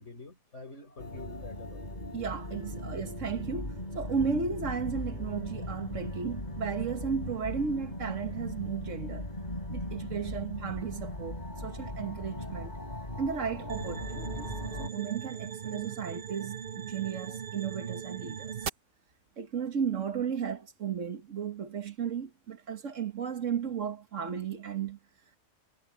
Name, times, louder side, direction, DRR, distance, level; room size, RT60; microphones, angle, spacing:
voice 1, 0.0-2.2, left 3 dB, 75° left, 5.5 m, -47 dB
sound 1, 1.0-14.9, left 1 dB, 40° left, 4.4 m, -38 dB
voice 2, 2.1-9.3 9.7-12.8 13.2-14.5 14.8-18.7 19.4-25.0, right 6 dB, 90° right, 1.8 m, -34 dB
sound 2, 13.7-18.7, right 8 dB, 55° right, 1.0 m, -39 dB
omnidirectional pair, 1.3 m